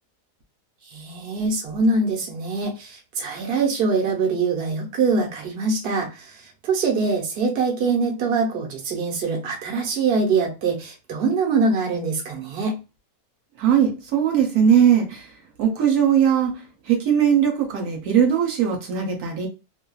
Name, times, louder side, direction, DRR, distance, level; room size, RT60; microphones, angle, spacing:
voice 1, 0.9-12.8, right 4 dB, 45° right, -1 dB, 1.0 m, -23 dB
voice 2, 13.6-15.3 15.6-19.5, right 8 dB, 75° right, 2 dB, 1.2 m, -19 dB
2.7 x 2.4 x 2.3 m, 0.29 s
omnidirectional pair, 1.7 m